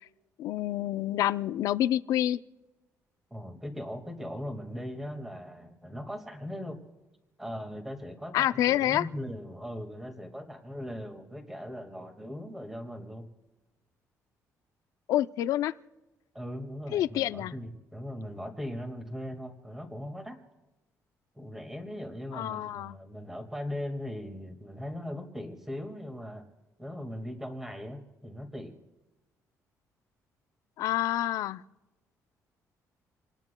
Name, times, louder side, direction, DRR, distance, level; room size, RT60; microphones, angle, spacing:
voice 1, 0.4-2.4 8.3-9.1 15.1-15.7 16.9-17.5 22.3-22.9 30.8-31.6, left 12 dB, 75° left, 14 dB, 0.5 m, -27 dB
voice 2, 3.3-6.8 7.4-13.2 16.3-20.4 21.4-26.4 26.8-28.8, equal, 5° right, 5 dB, 1.8 m, -39 dB
28.0 x 19.5 x 2.2 m, 1.1 s
cardioid pair, 175°, 6 cm